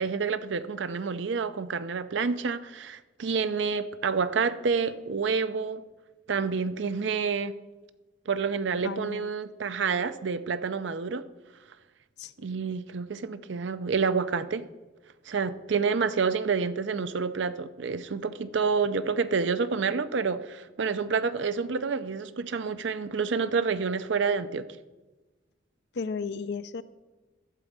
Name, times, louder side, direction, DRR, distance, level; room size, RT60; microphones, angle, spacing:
voice 1, 0.0-5.8 6.3-7.5 8.3-11.3 12.4-14.7 15.3-24.7, right 5 dB, 75° right, 13 dB, 0.5 m, -28 dB
voice 2, 8.8-9.3 12.2-12.3 25.9-26.8, left 5 dB, 65° left, 14 dB, 0.4 m, -34 dB
12.0 x 4.1 x 8.0 m, 1.1 s
head